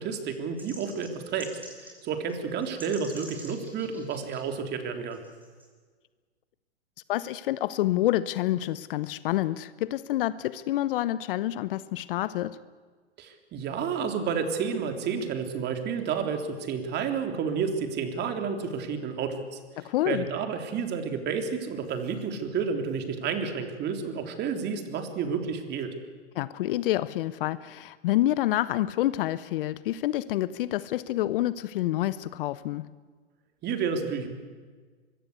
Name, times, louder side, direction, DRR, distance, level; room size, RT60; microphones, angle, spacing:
voice 1, 0.0-5.2 13.2-19.6 20.1-25.9 33.6-34.3, right 6 dB, 30° right, 6 dB, 3.5 m, -30 dB
sound 1, 0.6-2.0 2.3-2.4 2.6-4.4 5.1-5.7, equal, 5° right, 6.0 m, -46 dB
voice 2, 7.1-12.6 19.8-20.3 26.3-32.9, left 14 dB, 55° left, 16 dB, 1.0 m, -28 dB
24.0 x 23.0 x 8.2 m, 1.5 s
hypercardioid pair, 115°, 33 cm